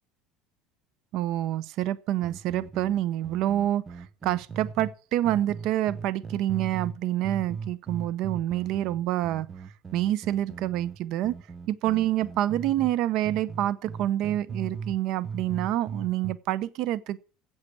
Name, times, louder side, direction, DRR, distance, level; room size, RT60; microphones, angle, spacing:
voice 1, 1.1-9.5 9.9-11.3 11.7-17.2, right 13 dB, 60° right, 0.7 m, -27 dB
sound 1, 2.2-4.9 5.2-7.0 7.2-12.9 13.2-15.0 15.2-16.3, right 5 dB, 25° right, 0.8 m, -38 dB
8.1 x 8.1 x 8.4 m
supercardioid pair, 110°, 0 cm